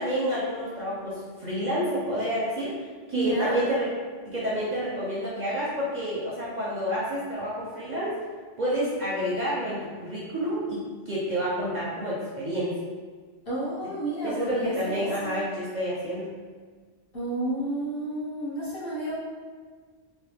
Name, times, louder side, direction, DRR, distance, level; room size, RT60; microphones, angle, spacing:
voice 1, 0.0-2.7 3.1-3.9 4.3-8.1 8.6-12.7 14.2-16.3, equal, 45° right, -8 dB, 0.7 m, -29 dB
voice 2, 3.1-3.6 13.5-15.4 17.1-19.2, right 1 dB, 50° left, -9 dB, 1.4 m, -30 dB
3.3 x 2.7 x 3.3 m, 1.5 s
omnidirectional pair, 1.3 m